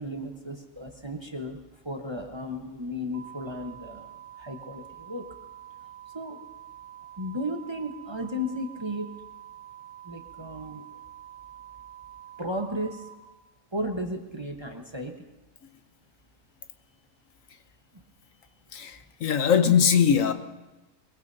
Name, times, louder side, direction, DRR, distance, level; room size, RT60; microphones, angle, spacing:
voice 1, 0.0-5.3 6.1-6.4 7.2-9.1 10.0-10.8 12.4-13.1 13.7-15.3 17.9-18.0, equal, 20° right, 2 dB, 1.0 m, -34 dB
sound 1, 3.1-13.1, right 11 dB, 55° left, 3.6 m, -47 dB
voice 2, 18.7-20.3, left 7 dB, 70° left, 9 dB, 1.2 m, -21 dB
22.0 x 21.5 x 2.7 m, 1.1 s
omnidirectional pair, 1.5 m